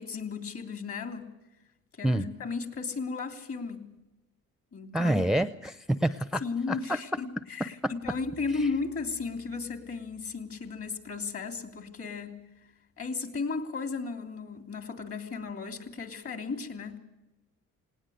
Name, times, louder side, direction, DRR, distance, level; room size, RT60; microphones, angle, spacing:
voice 1, 0.0-1.3 1.9-3.9 4.7-5.2 6.4-12.4 13.0-17.0, left 4 dB, 50° left, 7 dB, 3.1 m, -35 dB
voice 2, 4.9-6.4 6.7-6.8 7.8-7.9 8.6-8.7, right 1 dB, ahead, 13 dB, 0.6 m, -27 dB
sound 1, 8.0-12.4, left 4 dB, 65° left, 6.0 m, -57 dB
19.0 x 18.5 x 8.1 m, 0.98 s
cardioid pair, 90°, 30 cm